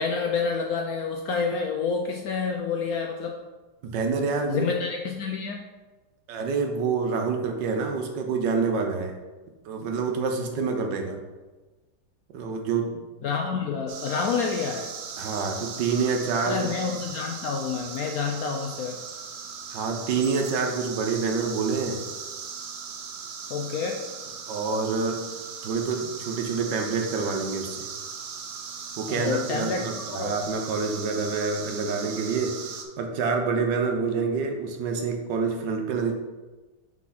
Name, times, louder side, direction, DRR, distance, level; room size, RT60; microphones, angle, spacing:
voice 1, 0.0-3.4 4.5-5.6 13.2-14.9 16.5-19.0 23.5-24.0 29.1-30.4, left 5 dB, 70° left, 2 dB, 0.9 m, -28 dB
voice 2, 3.8-4.6 6.3-9.1 9.6-11.2 12.3-13.0 13.5-13.6 15.2-16.7 19.7-22.0 24.5-25.2 25.6-27.9 29.0-32.6 33.0-36.1, right 4 dB, 70° right, 3 dB, 1.4 m, -27 dB
sound 1, 13.9-32.8, right 6 dB, 90° right, 1.5 m, -38 dB
6.1 x 4.4 x 4.2 m, 1.2 s
omnidirectional pair, 2.0 m